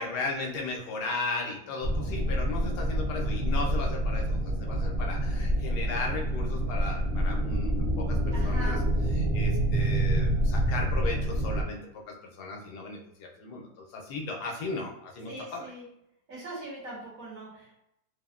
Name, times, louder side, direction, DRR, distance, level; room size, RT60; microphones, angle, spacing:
voice 1, 0.0-8.8 9.1-11.8 12.4-15.7, left 3 dB, 85° left, 0 dB, 1.2 m, -36 dB
sound 1, 1.8-11.6, right 1 dB, 85° right, 0.6 m, -27 dB
voice 2, 8.3-8.8 15.3-15.8 16.3-17.7, right 1 dB, 60° right, -5 dB, 1.4 m, -41 dB
3.3 x 2.0 x 2.3 m, 0.80 s
omnidirectional pair, 1.7 m